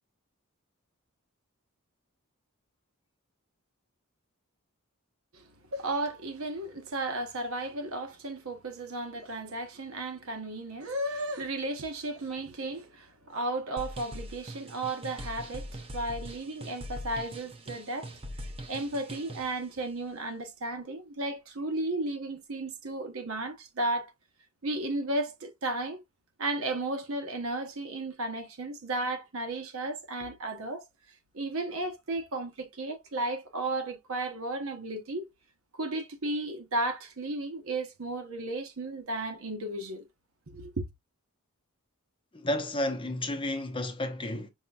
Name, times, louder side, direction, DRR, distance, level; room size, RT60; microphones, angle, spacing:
voice 1, 5.7-18.1 18.7-24.1 24.6-26.0 26.4-30.8 31.3-35.3 35.7-40.1 40.5-40.8, right 2 dB, 65° right, 0.9 m, -34 dB
sound 1, 13.8-19.6, equal, 25° right, 0.7 m, -42 dB
voice 2, 42.3-44.5, left 1 dB, 25° left, 0.7 m, -31 dB
5.5 x 2.8 x 2.3 m
head